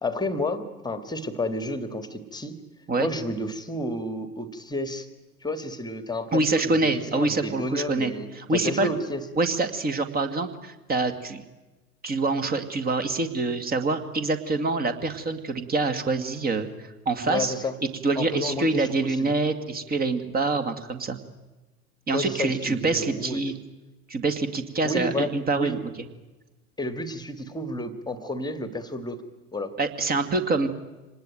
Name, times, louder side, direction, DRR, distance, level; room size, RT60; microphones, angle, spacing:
voice 1, 0.0-2.6 3.0-5.1 5.4-9.2 17.2-17.7 18.1-19.3 22.1-23.4 24.8-25.7 26.8-29.2 29.5-29.7, left 1 dB, 10° left, 11 dB, 1.8 m, -31 dB
voice 2, 6.3-8.9 9.4-11.5 12.0-17.5 18.0-21.2 22.1-23.5 24.1-25.8 29.8-30.7, right 3 dB, 20° right, 9 dB, 2.1 m, -26 dB
25.5 x 19.5 x 9.2 m, 1.1 s
figure-of-eight pair, 90°, 45 cm